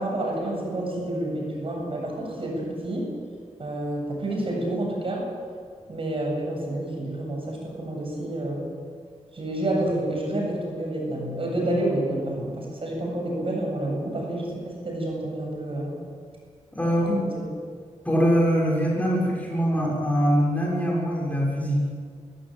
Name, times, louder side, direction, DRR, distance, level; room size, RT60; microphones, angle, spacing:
voice 1, 0.0-3.1 3.6-5.3 5.9-8.6 9.3-16.0 17.1-17.2, right 1 dB, 50° right, -1 dB, 8.0 m, -29 dB
voice 2, 16.7-17.2 18.0-21.9, equal, 10° left, -3 dB, 6.3 m, -23 dB
23.0 x 16.0 x 9.0 m, 2.1 s
wide cardioid pair, 115°, 12 cm